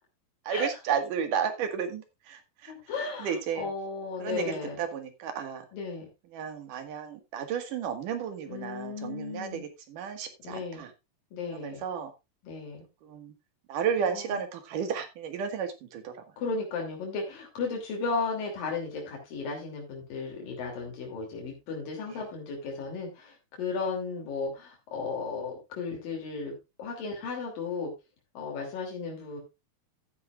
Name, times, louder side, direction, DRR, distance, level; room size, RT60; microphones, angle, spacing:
voice 1, 0.4-2.7 3.2-3.7 4.2-5.6 6.3-10.9 11.5-12.1 13.0-13.3 13.7-16.1, right 7 dB, 75° right, 7 dB, 3.3 m, -33 dB
voice 2, 2.7-4.8 5.7-6.1 8.5-9.7 10.4-10.9 11.3-11.8 12.4-12.8 14.0-14.4 16.4-27.9 28.3-29.4, left 4 dB, 85° left, 0 dB, 4.6 m, -35 dB
13.5 x 10.0 x 2.4 m, 0.24 s
omnidirectional pair, 3.9 m